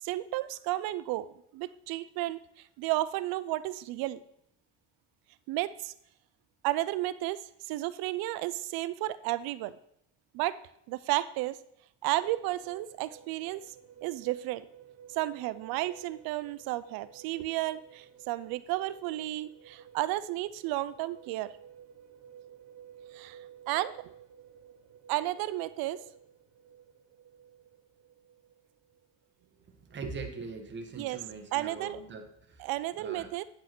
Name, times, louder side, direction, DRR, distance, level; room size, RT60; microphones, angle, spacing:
voice 1, 0.0-4.2 5.5-5.9 6.6-7.4 7.7-9.8 10.3-10.6 10.9-11.6 12.0-13.7 14.0-14.6 15.1-21.5 23.1-23.4 23.7-23.9 25.1-26.0 31.0-31.2 31.5-32.0 32.6-33.4, right 16 dB, 80° right, 16 dB, 0.6 m, -32 dB
sound 1, 12.2-29.4, right 8 dB, 50° right, 1.2 m, -54 dB
voice 2, 29.7-32.7 33.0-33.3, right 4 dB, 30° right, 4 dB, 1.6 m, -42 dB
9.4 x 6.2 x 6.0 m, 0.72 s
cardioid pair, 120°, 35 cm